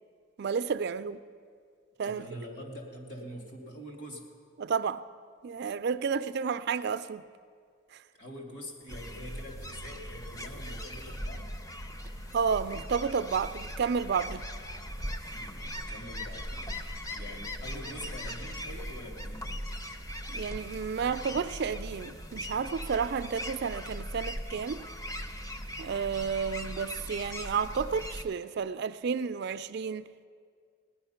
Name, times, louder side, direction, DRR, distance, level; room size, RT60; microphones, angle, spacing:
voice 1, 0.4-1.2 2.0-2.3 4.6-5.0 5.4-7.2 7.9-8.0 12.3-14.4 20.3-24.8 25.8-30.1, right 6 dB, 55° right, 0.4 m, -31 dB
voice 2, 2.0-4.3 8.1-11.6 15.3-19.5 24.8-25.0, equal, 60° left, 2.4 m, -45 dB
sound 1, 8.9-28.2, equal, 15° left, 0.6 m, -39 dB
17.5 x 10.5 x 5.7 m
head